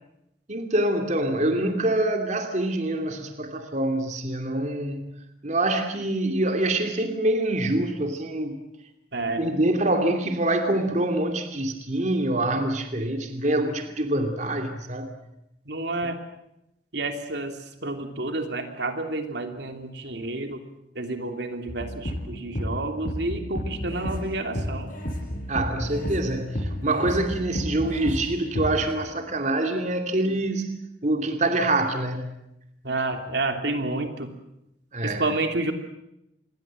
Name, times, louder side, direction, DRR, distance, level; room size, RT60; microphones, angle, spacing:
voice 1, 0.5-5.2 5.4-8.6 9.3-15.1 25.5-30.7 31.0-32.4 34.9-35.3, right 1 dB, 40° right, 5 dB, 2.6 m, -25 dB
voice 2, 9.1-9.4 15.7-16.2 16.9-17.5 17.8-20.6 20.9-24.9 32.8-34.3 35.0-35.7, right 2 dB, 75° right, 6 dB, 3.0 m, -29 dB
sound 1, 21.7-28.9, equal, 50° left, 6.3 m, -32 dB
27.0 x 22.0 x 7.6 m, 0.84 s
head